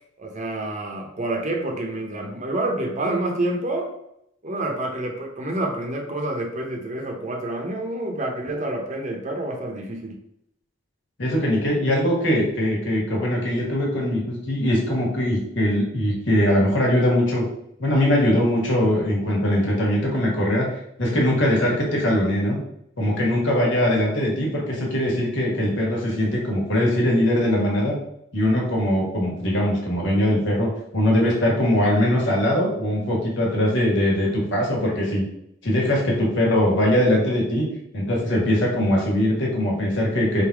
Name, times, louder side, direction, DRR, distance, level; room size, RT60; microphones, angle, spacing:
voice 1, 0.2-3.9 4.4-10.2, right 1 dB, 35° right, 1 dB, 0.8 m, -28 dB
voice 2, 11.2-17.4 17.8-20.6 21.0-22.6 23.0-28.0 28.3-35.3 35.6-37.6 37.9-40.4, left 1 dB, 65° left, -3 dB, 1.5 m, -21 dB
3.6 x 2.7 x 4.5 m, 0.76 s
head